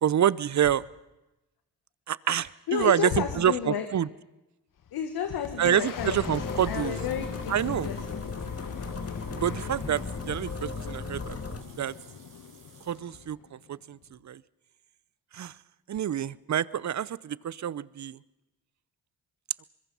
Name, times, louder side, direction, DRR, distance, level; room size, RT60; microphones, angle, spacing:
voice 1, 0.0-0.8 2.1-4.1 5.6-6.9 7.5-7.9 9.3-11.4 11.8-11.9 12.9-14.4 15.3-15.5 15.9-18.2, right 10 dB, 50° right, 21 dB, 0.7 m, -27 dB
voice 2, 2.4-3.9 4.9-8.2, left 8 dB, 75° left, 6 dB, 1.6 m, -32 dB
Boom, 4.8-14.2, left 8 dB, 60° left, 1.4 m, -42 dB
sound 1, 6.0-11.6, left 4 dB, 40° left, 2.1 m, -36 dB
sound 2, 6.4-13.1, right 5 dB, 75° right, 6.5 m, -57 dB
24.5 x 21.5 x 5.6 m, 0.99 s
supercardioid pair, 50°, 37 cm